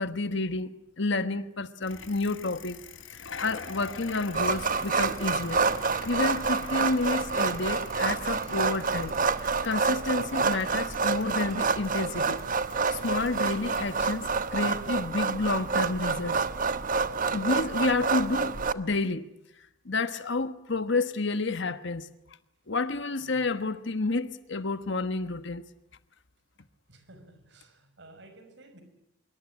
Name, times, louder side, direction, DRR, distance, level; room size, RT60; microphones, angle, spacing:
voice 1, 0.0-2.8 3.1-5.7 6.0-9.1 9.4-12.4 12.9-16.4 17.3-19.3 19.8-22.1 22.7-25.7, left 3 dB, 65° left, 1.3 m, -30 dB
Bicycle, 1.8-15.0, left 5 dB, 85° left, 3.3 m, -46 dB
sound 1, 4.3-18.7, right 4 dB, 45° right, 1.0 m, -28 dB
voice 2, 26.9-28.8, right 1 dB, 65° right, 6.0 m, -53 dB
25.5 x 23.5 x 9.9 m
head